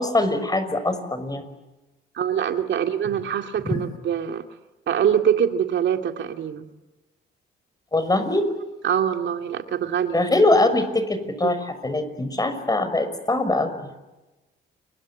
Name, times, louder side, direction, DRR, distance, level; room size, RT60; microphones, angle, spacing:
voice 1, 0.0-1.4 3.6-3.8 7.9-8.4 10.1-13.9, left 2 dB, 20° left, 10 dB, 5.9 m, -22 dB
voice 2, 2.1-4.4 4.9-6.7 8.8-10.2 11.4-11.5, right 9 dB, 65° right, 5 dB, 2.4 m, -24 dB
30.0 x 22.5 x 8.6 m, 1.1 s
cardioid pair, 90°, 20 cm